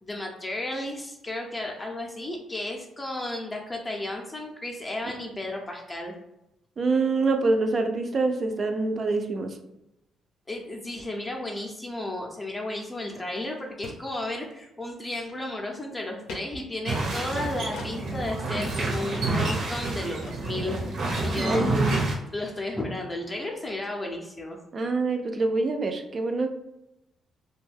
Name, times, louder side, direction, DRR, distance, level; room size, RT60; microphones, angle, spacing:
voice 1, 0.0-6.1 10.5-21.6 22.3-24.6, left 1 dB, 20° left, 0 dB, 0.5 m, -33 dB
voice 2, 6.8-9.5 21.4-22.0 24.7-26.5, right 3 dB, 40° right, 6 dB, 0.4 m, -25 dB
sound 1, 13.1-13.2 13.4-13.5 13.8-14.1 14.4-14.6 15.0-15.7 16.3-16.5 17.7-17.9 18.5-18.6 19.1-19.3 19.6-19.7 19.8-20.0 20.2-20.4, left 2 dB, 80° left, 0.5 m, -42 dB
sound 2, 16.9-22.1, right 2 dB, 75° right, 0.7 m, -28 dB
2.5 x 2.2 x 3.3 m, 0.86 s
cardioid pair, 90°, 0 cm